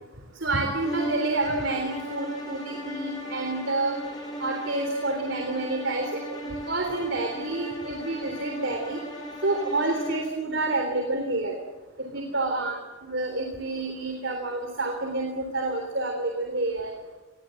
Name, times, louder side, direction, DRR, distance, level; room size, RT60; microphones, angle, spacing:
voice 1, 0.4-4.0 4.4-9.0 9.4-11.5 12.0-12.8 13.1-16.9, right 2 dB, 60° right, 3 dB, 3.6 m, -28 dB
sound 1, 0.7-10.4, equal, 20° left, 5.9 m, -37 dB
27.0 x 21.0 x 7.9 m, 1.2 s
head